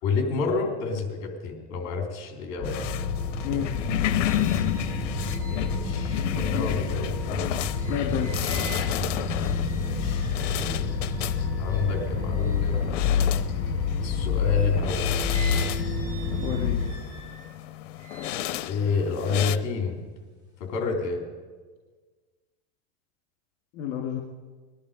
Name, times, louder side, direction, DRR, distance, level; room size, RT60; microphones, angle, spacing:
voice 1, 0.0-2.9 5.5-7.1 9.7-10.9 11.6-12.9 14.0-15.1 18.7-20.0 20.6-21.2, left 4 dB, 45° left, 2 dB, 3.5 m, -29 dB
sound 1, 2.6-16.9, left 5 dB, 10° left, 4.2 m, -28 dB
sound 2, 2.7-19.6, left 14 dB, 85° left, 0.7 m, -33 dB
voice 2, 3.4-3.8 7.9-8.3 16.4-16.8 23.7-24.2, left 9 dB, 60° left, 1 dB, 2.0 m, -29 dB
sound 3, 3.7-13.9 14.4-19.9 20.3-20.9, right 2 dB, 10° right, 4.7 m, -47 dB
20.0 x 11.5 x 5.2 m, 1.4 s
supercardioid pair, 140°, 36 cm